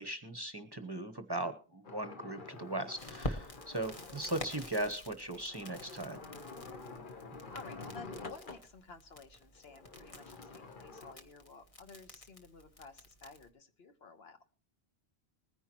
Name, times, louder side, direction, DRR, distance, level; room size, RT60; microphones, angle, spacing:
voice 1, 0.0-6.2, right 1 dB, 25° right, 9 dB, 0.9 m, -38 dB
sound 1, 1.8-8.7 9.5-11.1, left 3 dB, 50° left, 1.2 m, -49 dB
Crackle, 3.0-13.5, left 1 dB, 30° left, 1.3 m, -48 dB
voice 2, 7.5-14.4, left 4 dB, 65° left, 8 dB, 1.4 m, -53 dB
21.0 x 10.0 x 3.0 m, 0.38 s
omnidirectional pair, 1.1 m